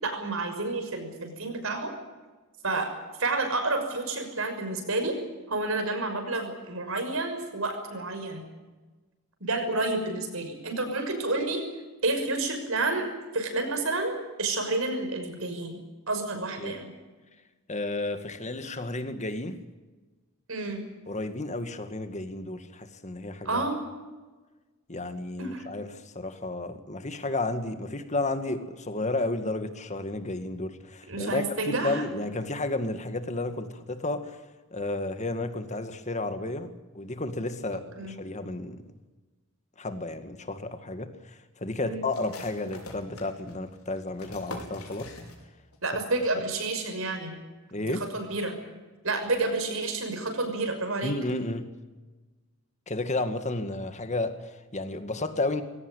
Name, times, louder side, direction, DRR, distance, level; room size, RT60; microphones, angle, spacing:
voice 1, 0.0-1.9 2.6-2.9 3.2-5.2 5.5-8.4 9.4-11.6 12.0-13.1 13.3-15.8 16.1-16.9 20.5-20.8 23.4-23.8 25.4-25.7 31.1-32.0 37.9-38.2 41.8-42.1 45.8-47.4 47.8-48.6 49.0-51.1, right 2 dB, 70° right, 6 dB, 6.2 m, -30 dB
voice 2, 17.7-19.6 21.1-23.6 24.9-34.4 34.7-38.8 39.8-45.2 46.3-46.4 47.7-48.1 51.0-51.7 52.9-55.6, left 2 dB, 35° left, 9 dB, 2.1 m, -32 dB
sound 1, 42.1-45.8 46.0-46.1 46.6-47.0, left 2 dB, 90° left, 5.3 m, -44 dB
21.5 x 18.0 x 10.0 m, 1.2 s
head